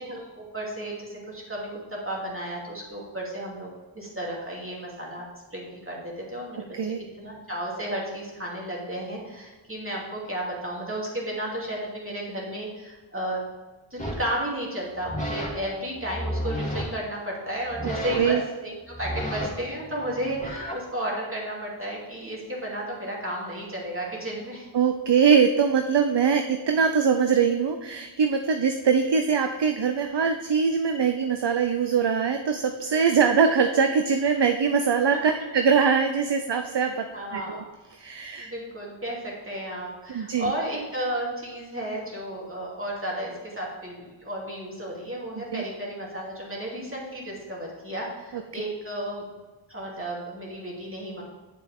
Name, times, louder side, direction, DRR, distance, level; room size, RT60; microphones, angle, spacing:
voice 1, 0.0-5.3 5.5-13.5 13.9-24.7 35.1-35.3 37.1-37.6 38.4-49.2 49.7-51.2, right 1 dB, 25° right, -4 dB, 2.7 m, -33 dB
sound 1, 14.0-14.3 14.9-15.5 15.9-16.8 17.6-18.4 18.8-20.8, equal, 15° left, 2.1 m, -32 dB
voice 2, 24.7-37.1 37.3-37.6 37.9-38.5 40.1-40.5 45.4-45.6 48.3-48.4, right 6 dB, 55° right, 6 dB, 0.6 m, -22 dB
9.3 x 7.3 x 3.6 m, 1.2 s
wide cardioid pair, 45°, 50 cm